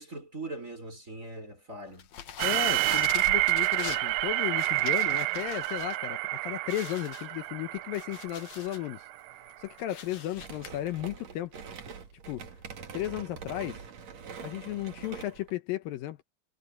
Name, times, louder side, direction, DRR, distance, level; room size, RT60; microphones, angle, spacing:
voice 1, 0.0-2.1, right 2 dB, 20° right, 5.5 m, -41 dB
sound 1, 2.0-6.0 6.3-6.4 6.7-8.9 9.3-10.7, left 9 dB, 60° left, 2.2 m, -43 dB
voice 2, 2.4-9.0 9.6-11.6 12.3-12.5 12.9-13.8 14.4-16.2, left 14 dB, 75° left, 2.4 m, -35 dB
sound 2, 2.4-9.3, right 19 dB, 85° right, 1.9 m, -28 dB
sound 3, 10.3-15.5, right 6 dB, 50° right, 2.8 m, -44 dB
omnidirectional pair, 4.5 m